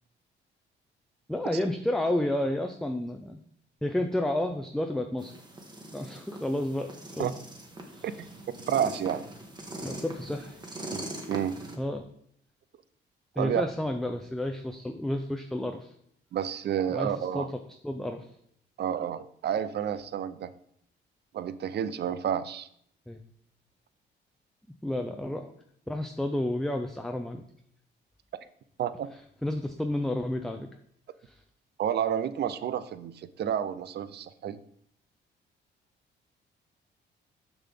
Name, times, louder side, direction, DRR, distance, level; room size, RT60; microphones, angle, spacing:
voice 1, 1.3-3.4 3.8-5.3 5.9-7.3 7.9-8.1 9.8-10.6 11.8-12.1 13.4-15.9 16.9-17.5 17.8-18.3 23.1-23.2 24.8-25.5 25.9-27.4 29.4-30.7 31.2-31.4, left 1 dB, ahead, 5 dB, 0.5 m, -31 dB
sound 1, 5.2-11.8, right 1 dB, 20° right, 1.4 m, -42 dB
voice 2, 8.7-9.2 10.9-11.6 13.4-13.7 16.3-17.5 18.8-20.5 21.3-22.7 28.8-29.1 31.8-34.6, right 9 dB, 55° right, 14 dB, 0.6 m, -30 dB
7.0 x 5.9 x 3.7 m, 0.67 s
cardioid pair, 90°, 20 cm